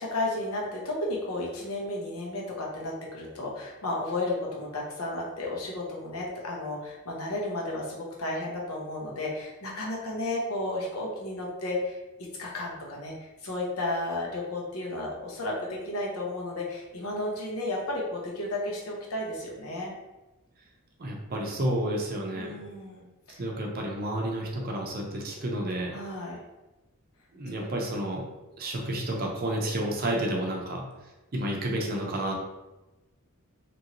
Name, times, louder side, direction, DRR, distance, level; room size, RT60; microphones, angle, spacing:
voice 1, 0.0-12.0 12.4-19.9 22.3-23.4 25.9-26.4 27.6-27.7, left 2 dB, 70° left, -2 dB, 0.7 m, -33 dB
voice 2, 21.0-22.6 23.4-25.9 27.3-28.2 28.6-30.8 31.3-32.3, right 1 dB, 45° right, 0 dB, 0.5 m, -30 dB
3.0 x 2.5 x 2.9 m, 1.0 s
head